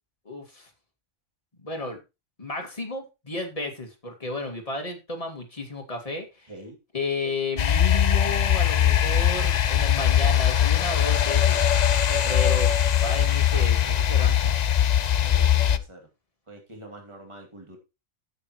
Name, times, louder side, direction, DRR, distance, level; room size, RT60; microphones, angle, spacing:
voice 1, 0.3-0.7 1.6-2.0 2.4-6.5 6.9-11.7 12.3-12.7 13.0-14.5, left 2 dB, 25° left, 2 dB, 2.2 m, -32 dB
sound 1, 7.6-15.8, left 10 dB, 65° left, 0.4 m, -21 dB
voice 2, 11.9-12.3 13.5-13.6 15.2-16.1 16.5-17.8, right 1 dB, 20° right, 2 dB, 2.6 m, -43 dB
10.5 x 8.5 x 3.1 m, 0.26 s
omnidirectional pair, 1.4 m